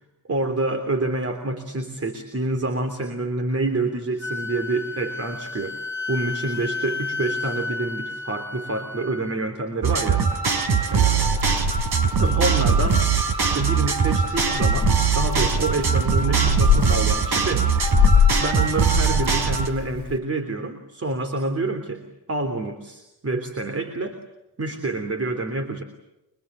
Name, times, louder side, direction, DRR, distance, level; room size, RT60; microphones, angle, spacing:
voice 1, 0.3-5.8 6.1-10.3 10.9-11.4 12.2-13.0 13.4-17.7 18.4-22.0 22.3-24.2 24.6-25.8, right 2 dB, 30° right, 8 dB, 3.3 m, -27 dB
Wind instrument woodwind instrument, 4.2-9.4, left 3 dB, 25° left, 3.6 m, -32 dB
sound 1, 9.8-19.7, right 6 dB, 55° right, 4.4 m, -21 dB
Purr / Meow, 11.4-20.2, left 8 dB, 45° left, 2.0 m, -26 dB
29.5 x 24.0 x 8.2 m, 0.93 s
cardioid pair, 80°, 45 cm